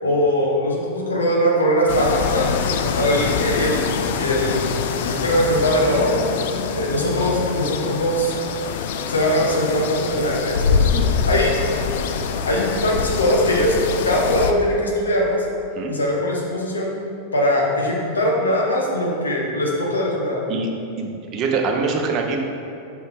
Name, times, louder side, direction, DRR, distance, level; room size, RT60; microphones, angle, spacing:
voice 1, 0.0-2.5 2.8-3.9 4.1-4.7 5.0-6.2 6.7-8.4 9.1-10.9 11.3-11.6 12.5-13.8 14.0-15.5 15.9-16.9 17.3-20.4, equal, 75° left, -2 dB, 1.0 m, -21 dB
sound 1, 1.9-14.5, left 6 dB, 55° left, 0.4 m, -24 dB
voice 2, 21.0-22.4, right 4 dB, 35° right, 2 dB, 0.7 m, -24 dB
6.1 x 5.3 x 3.5 m, 2.7 s
figure-of-eight pair, 90°, 0 cm